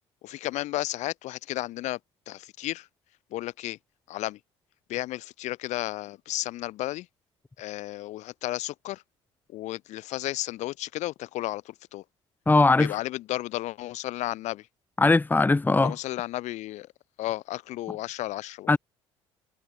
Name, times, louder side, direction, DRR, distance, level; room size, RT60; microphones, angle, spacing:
voice 1, 0.2-2.0 2.3-2.9 3.3-3.8 4.1-4.4 4.9-7.1 7.6-9.0 9.5-12.0 12.8-14.6 15.8-16.9 17.2-18.7, left 16 dB, 55° left, 3.4 m, -33 dB
voice 2, 12.5-13.0 15.0-15.9 18.7-18.8, left 3 dB, 15° left, 1.3 m, -20 dB
figure-of-eight pair, 55°, 14 cm